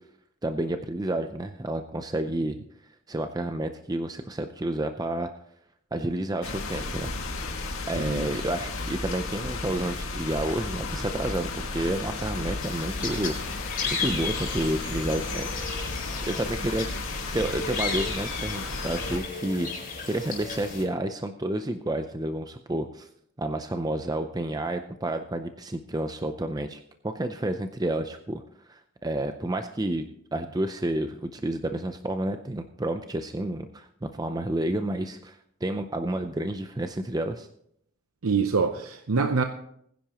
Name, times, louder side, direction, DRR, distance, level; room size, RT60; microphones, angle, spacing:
voice 1, 0.4-2.6 3.1-5.3 5.9-7.1 7.9-13.4 14.0-15.6 16.3-16.9 17.3-19.7 20.1-23.1 23.4-28.4 28.7-30.0 30.3-37.5, right 1 dB, 20° right, 7 dB, 0.5 m, -30 dB
sound 1, 6.4-19.2, left 3 dB, 75° left, 2.0 m, -34 dB
sound 2, 12.6-20.8, left 5 dB, 40° left, 4.5 m, -34 dB
voice 2, 38.2-39.4, right 4 dB, 85° right, 7 dB, 0.8 m, -24 dB
20.0 x 10.5 x 3.0 m, 0.69 s
head